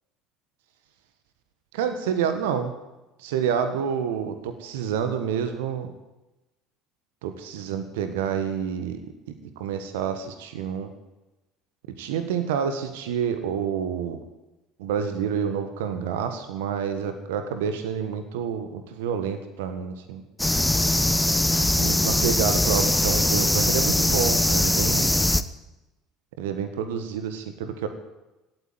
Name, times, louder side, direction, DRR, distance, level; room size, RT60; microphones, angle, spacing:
voice 1, 1.7-2.7 3.2-5.9 7.2-9.0 9.6-10.9 12.0-14.2 14.8-20.2 21.8-25.1 26.4-27.9, right 7 dB, 75° right, 8 dB, 1.5 m, -28 dB
sound 1, 20.4-25.4, left 1 dB, 5° left, 1.0 m, -21 dB
16.5 x 9.2 x 9.3 m, 1.0 s
hypercardioid pair, 65°, 0 cm